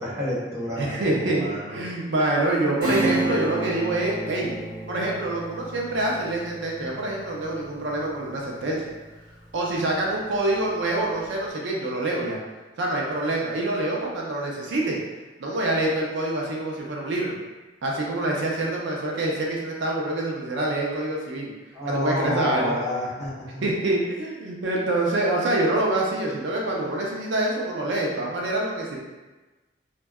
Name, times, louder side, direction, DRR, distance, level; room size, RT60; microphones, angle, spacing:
voice 1, 0.0-1.8 21.7-23.6, left 1 dB, 15° right, -8 dB, 0.6 m, -29 dB
voice 2, 0.8-4.5 4.9-8.8 9.5-12.4 12.8-15.0 15.4-17.3 17.8-21.5 21.8-22.7 23.6-29.0, right 2 dB, 80° right, -2 dB, 0.5 m, -26 dB
Acoustic guitar / Strum, 2.8-9.0 9.4-9.5, right 1 dB, 55° right, 1.3 m, -31 dB
2.6 x 2.2 x 2.2 m, 1.2 s
head